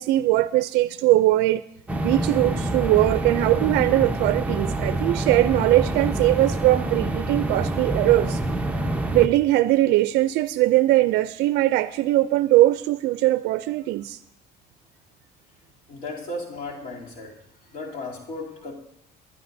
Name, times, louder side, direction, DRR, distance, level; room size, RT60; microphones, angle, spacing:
voice 1, 0.0-1.6 2.0-8.4 9.1-14.2, right 16 dB, 85° right, 0.4 m, -20 dB
sound 1, 1.9-9.3, right 1 dB, 10° right, 1.0 m, -26 dB
voice 2, 15.9-17.4 17.7-18.7, left 2 dB, 60° left, 3.0 m, -35 dB
21.5 x 11.0 x 2.6 m
cardioid pair, 110°, 17 cm